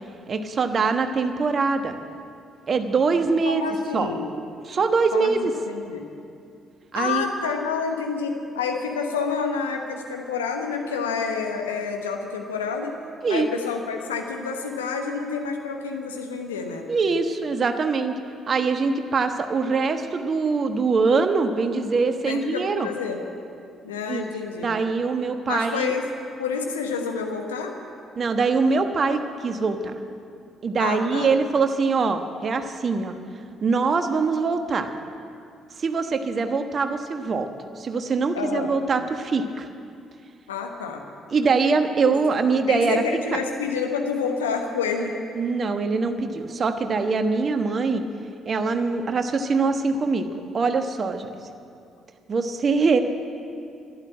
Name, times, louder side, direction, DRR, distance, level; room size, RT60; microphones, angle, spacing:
voice 1, 0.3-2.0 2.7-3.6 3.9-4.1 4.7-5.5 6.9-7.3 13.2-13.5 16.9-18.1 18.5-22.9 24.1-24.3 24.6-25.9 28.2-29.8 30.6-33.2 33.6-34.9 35.8-37.5 37.8-39.7 41.3-43.0 43.3-43.4 45.3-48.0 48.4-50.3 50.5-51.3 52.3-53.0, right 4 dB, 45° right, 7 dB, 1.2 m, -23 dB
voice 2, 3.5-4.3 5.1-6.1 6.9-12.9 13.3-16.8 22.3-23.2 23.8-24.8 25.5-26.1 26.4-27.7 30.8-31.3 38.3-38.7 40.5-41.0 42.0-42.1 42.7-45.2, left 5 dB, 85° left, 3 dB, 1.1 m, -28 dB
12.0 x 11.5 x 8.8 m, 2.4 s
hypercardioid pair, 45°, 0 cm